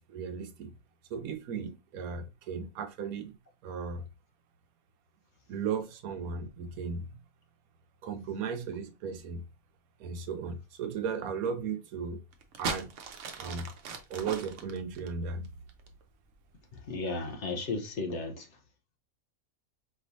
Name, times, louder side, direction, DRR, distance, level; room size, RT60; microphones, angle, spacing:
voice 1, 0.1-0.8 1.1-3.4 3.6-4.0 5.5-7.1 8.0-9.4 10.0-12.2 12.6-12.9 13.4-13.7 14.1-15.5, right 6 dB, 85° right, 1.1 m, -36 dB
sound 1, 12.3-16.0 16.8-17.2, right 5 dB, 65° right, 1.0 m, -38 dB
voice 2, 16.7-18.5, left 3 dB, 60° left, 1.1 m, -34 dB
4.6 x 3.1 x 2.6 m
omnidirectional pair, 1.5 m